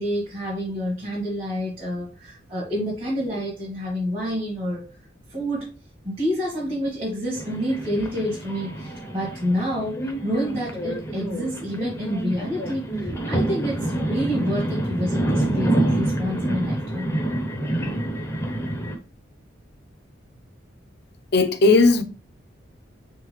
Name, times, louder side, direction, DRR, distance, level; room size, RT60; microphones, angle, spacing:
voice 1, 0.0-4.8 5.3-5.7 6.0-17.1, equal, 30° right, 1.3 m, -28 dB
sound 1, 7.3-19.0, right 1 dB, 15° left, 0.7 m, -27 dB
voice 2, 21.3-22.0, left 3 dB, 55° left, 0.6 m, -16 dB
3.7 x 3.6 x 3.1 m
head